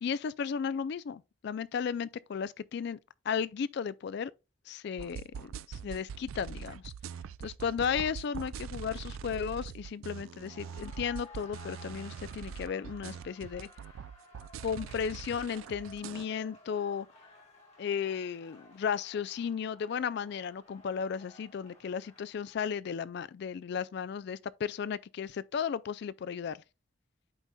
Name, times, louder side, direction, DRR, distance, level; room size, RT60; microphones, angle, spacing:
voice 1, 0.0-3.0 3.3-4.3 4.7-6.9 7.4-13.7 14.6-17.1 17.8-26.6, left 7 dB, 55° left, 0.3 m, -35 dB
sound 1, 5.0-16.3, right 7 dB, 80° right, 0.3 m, -43 dB
sound 2, 10.2-22.5, left 3 dB, 30° left, 1.8 m, -56 dB
12.0 x 4.0 x 2.2 m
head